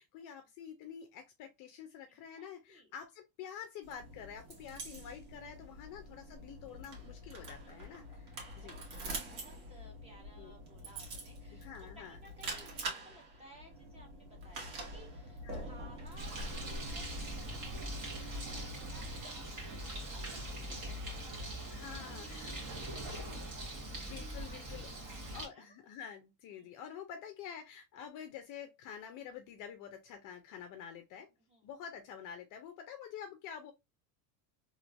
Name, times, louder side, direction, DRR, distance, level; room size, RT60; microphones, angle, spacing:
voice 1, 0.0-9.4 10.4-10.5 11.5-12.2 15.4-15.7 21.7-22.6 23.9-24.9 25.3-31.3 31.6-33.7, left 8 dB, 40° left, 0.5 m, -48 dB
voice 2, 2.4-2.9 5.8-6.0 7.6-24.6 24.9-25.7 26.6-26.7 31.5-31.7, equal, 10° right, 1.0 m, -60 dB
sound 1, 3.8-19.2, right 1 dB, 80° right, 1.6 m, -45 dB
Bird, 16.2-25.5, right 1 dB, 35° right, 1.5 m, -42 dB
3.1 x 3.0 x 2.4 m
supercardioid pair, 145°, 50 cm